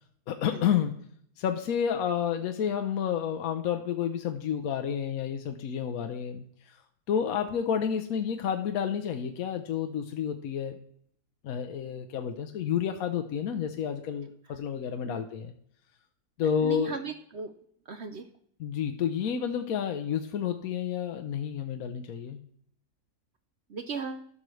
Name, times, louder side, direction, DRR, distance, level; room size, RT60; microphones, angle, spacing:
voice 1, 0.3-1.0 1.4-6.8 7.1-10.7 11.4-15.5 16.4-17.0 18.6-22.4, left 8 dB, 70° left, 6 dB, 1.1 m, -30 dB
voice 2, 16.6-17.5 17.9-18.3 23.7-24.3, right 5 dB, 60° right, 8 dB, 0.8 m, -37 dB
12.0 x 6.6 x 3.1 m, 0.66 s
omnidirectional pair, 1.7 m